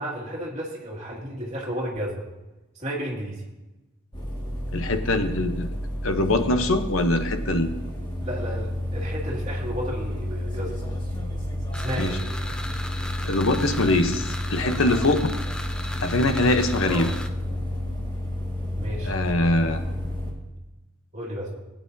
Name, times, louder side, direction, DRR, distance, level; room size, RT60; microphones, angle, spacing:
voice 1, 0.0-2.2 2.8-3.4 8.2-10.9 11.8-12.1 16.8-17.1 18.8-19.2 21.1-21.6, equal, 30° right, -4 dB, 2.4 m, -32 dB
sound 1, 4.1-20.3, left 1 dB, 20° left, 2.0 m, -30 dB
voice 2, 4.7-5.7 6.0-7.7 12.0-12.2 13.3-15.4 16.0-17.1 19.0-19.8, left 2 dB, 75° left, 7 dB, 0.9 m, -23 dB
sound 2, 11.7-17.3, left 1 dB, 5° left, 0.4 m, -37 dB
19.0 x 9.0 x 2.8 m, 1.0 s
head